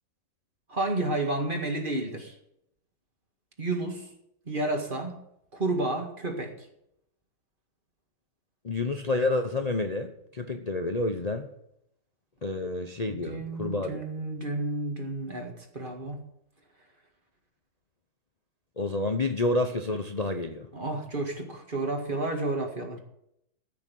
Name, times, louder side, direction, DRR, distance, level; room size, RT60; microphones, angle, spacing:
voice 1, 0.7-2.3 3.6-4.1 4.5-5.1 5.5-6.7 13.1-16.2 20.7-23.0, right 2 dB, 30° right, 3 dB, 2.1 m, -31 dB
voice 2, 8.6-11.5 12.4-14.0 18.8-20.7, left 2 dB, 40° left, 5 dB, 0.6 m, -29 dB
14.0 x 6.4 x 9.1 m, 0.78 s
omnidirectional pair, 1.9 m